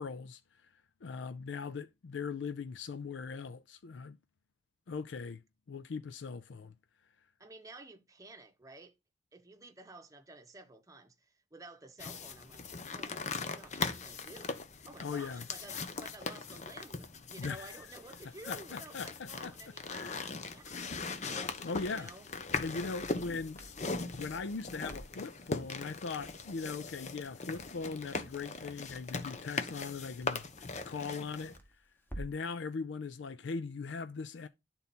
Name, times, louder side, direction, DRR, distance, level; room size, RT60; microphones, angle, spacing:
voice 1, 0.0-4.2 4.9-5.4 5.7-6.7 15.0-15.4 17.4-17.9 18.5-19.5 19.9-20.3 21.6-22.1 22.6-23.6 24.1-30.5 30.8-31.6 32.2-34.5, left 4 dB, 80° left, 0.4 m, -40 dB
voice 2, 7.4-8.9 9.3-12.7 12.9-14.6 14.8-21.2 21.8-22.3, right 2 dB, 20° right, 0.9 m, -52 dB
sound 1, 12.0-31.6, left 4 dB, 40° left, 0.8 m, -40 dB
Crackle, 22.3-32.5, right 1 dB, 10° left, 1.2 m, -53 dB
10.5 x 4.1 x 4.2 m
head